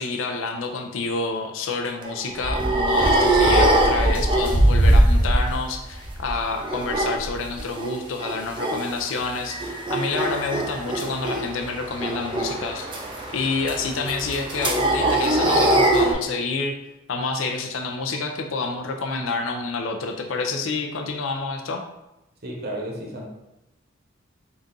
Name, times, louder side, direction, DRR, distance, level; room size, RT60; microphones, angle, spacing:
voice 1, 0.0-16.8 17.1-21.8, left 3 dB, 85° left, 4 dB, 0.5 m, -28 dB
sound 1, 2.0-5.7 5.9-7.9 8.2-8.8 9.2-16.1, right 1 dB, 25° right, 0.5 m, -21 dB
voice 2, 22.4-23.3, right 1 dB, 55° right, -1 dB, 0.9 m, -32 dB
4.0 x 2.4 x 3.8 m, 0.92 s
head